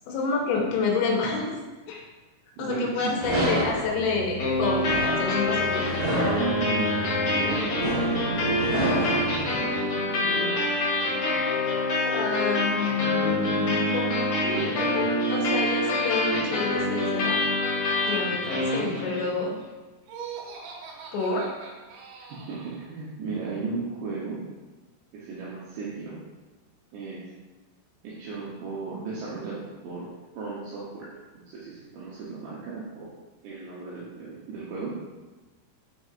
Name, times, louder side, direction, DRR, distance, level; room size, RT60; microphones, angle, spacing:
voice 1, 0.1-1.6 1.9-2.1 2.6-5.9 12.0-17.4 18.1-19.6 21.1-21.5, left 4 dB, 80° left, -1 dB, 3.0 m, -29 dB
voice 2, 2.6-3.1 6.4-7.6 8.1-10.6 22.3-24.4 25.1-26.2 26.9-27.2 28.0-30.1 30.4-33.2 33.4-35.0, right 4 dB, 75° right, -7 dB, 2.9 m, -35 dB
sound 1, 3.2-9.5, right 1 dB, 55° right, 2.1 m, -30 dB
sound 2, 4.4-19.4, left 1 dB, 60° left, 1.9 m, -26 dB
Laughter, 20.0-22.9, right 6 dB, 90° right, 3.6 m, -41 dB
7.1 x 5.9 x 2.5 m, 1.2 s
omnidirectional pair, 5.6 m